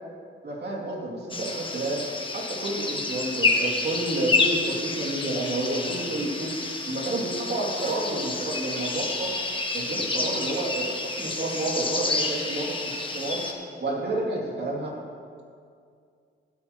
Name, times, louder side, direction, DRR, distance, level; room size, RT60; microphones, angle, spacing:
voice 1, 0.4-2.0 2.3-6.5 6.8-9.3 9.7-13.4 13.8-14.9, right 2 dB, 55° right, -3 dB, 2.7 m, -30 dB
sound 1, 1.3-13.5, left 3 dB, 25° left, 1.2 m, -29 dB
15.5 x 8.8 x 3.1 m, 2.2 s
cardioid pair, 75°, 20 cm